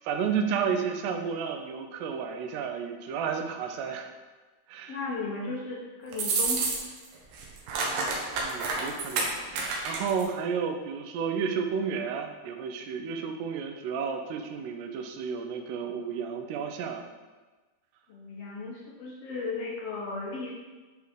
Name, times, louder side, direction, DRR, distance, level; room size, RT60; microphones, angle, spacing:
voice 1, 0.0-4.1 4.7-5.0 8.4-9.3 9.8-17.0, right 6 dB, 90° right, 4 dB, 2.8 m, -32 dB
voice 2, 4.9-6.6 18.1-20.5, left 3 dB, 70° left, -4 dB, 1.5 m, -35 dB
sound 1, 6.1-7.1 7.3-10.3, right 4 dB, 70° right, 2.3 m, -29 dB
10.5 x 3.5 x 4.7 m, 1.3 s
omnidirectional pair, 4.7 m